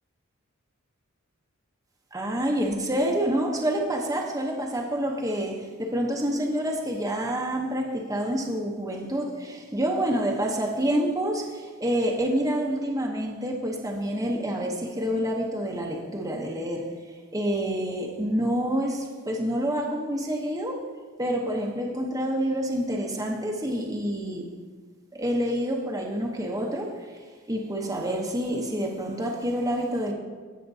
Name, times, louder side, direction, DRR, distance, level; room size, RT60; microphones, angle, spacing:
voice 1, 2.1-16.8 17.3-20.8 21.2-24.5 25.1-27.1 27.5-30.1, equal, 15° right, -1 dB, 0.8 m, -27 dB
16.5 x 5.8 x 2.7 m, 1.5 s
head